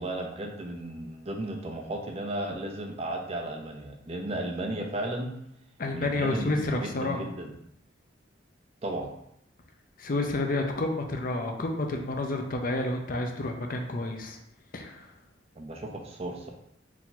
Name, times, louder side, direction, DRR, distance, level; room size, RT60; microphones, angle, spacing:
voice 1, 0.0-5.3 5.9-7.5 8.8-9.1 15.6-16.5, right 1 dB, 35° right, 3 dB, 0.5 m, -34 dB
voice 2, 5.8-7.3 10.0-14.4 14.7-15.1, left 2 dB, 50° left, 3 dB, 0.5 m, -30 dB
4.7 x 2.7 x 3.8 m, 0.74 s
head